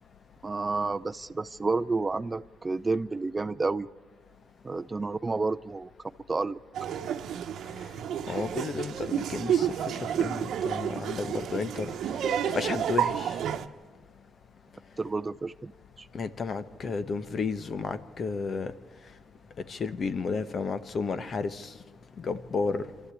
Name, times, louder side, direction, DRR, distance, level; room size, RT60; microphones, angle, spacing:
voice 1, 0.4-3.9 4.6-5.9 6.3-6.6 15.0-15.7 16.0-16.1, right 3 dB, 25° right, 12 dB, 0.5 m, -30 dB
Laughter, 6.7-13.7, right 9 dB, 70° right, 1.0 m, -30 dB
voice 2, 8.3-11.9 12.5-13.3 16.1-18.7 19.7-21.7 22.2-22.8, left 4 dB, 45° left, 12 dB, 1.1 m, -32 dB
25.5 x 13.0 x 8.5 m, 1.5 s
cardioid pair, 90°, 0 cm